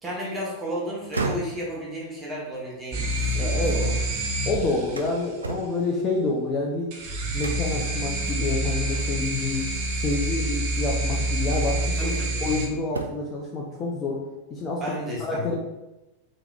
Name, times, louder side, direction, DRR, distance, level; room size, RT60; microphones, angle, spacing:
voice 1, 0.0-4.2 12.0-12.4 14.8-15.5, equal, 15° right, -5 dB, 1.2 m, -33 dB
sound 1, 0.9-4.0 4.4-6.8 7.4-7.9 8.3-8.4 8.9-9.4 10.7-10.8 11.4-12.5 12.8-13.4, right 3 dB, 75° right, 0.3 m, -36 dB
sound 2, 2.9-5.2 6.9-12.7, right 1 dB, 45° right, 0.6 m, -27 dB
voice 2, 3.3-3.8 4.5-6.9 7.3-9.6 10.0-12.1 12.4-14.2 14.5-15.0 15.3-15.5, left 3 dB, 25° left, -1 dB, 0.5 m, -28 dB
3.7 x 2.9 x 2.3 m, 1.0 s
figure-of-eight pair, 90°, 0 cm